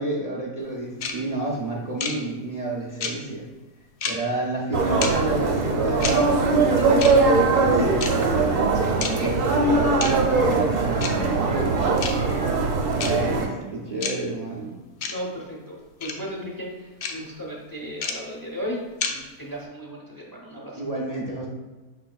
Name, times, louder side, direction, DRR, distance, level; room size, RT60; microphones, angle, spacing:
voice 1, 0.0-3.5 4.0-8.6 9.2-11.6 12.9-14.7 20.7-21.5, right 2 dB, 80° right, -5 dB, 0.3 m, -30 dB
sound 1, 1.0-1.1 2.0-2.1 3.0-3.1 4.0-4.1 5.0-5.1 6.0-6.1 7.0-7.1 8.0-8.1 9.0-9.1 10.0-10.1 11.0-11.1 12.0-12.1 13.0-13.1 14.0-14.1 15.0-15.1 16.0-16.1 17.0-17.1 18.0-18.1 19.0-19.1, left 5 dB, 70° left, 0.6 m, -27 dB
sound 2, 4.7-13.5, right 3 dB, 65° right, 1.1 m, -21 dB
voice 2, 8.8-9.2 15.1-18.8 19.1-20.8, equal, 25° left, -3 dB, 0.5 m, -35 dB
5.6 x 4.1 x 2.3 m, 1.2 s
omnidirectional pair, 1.6 m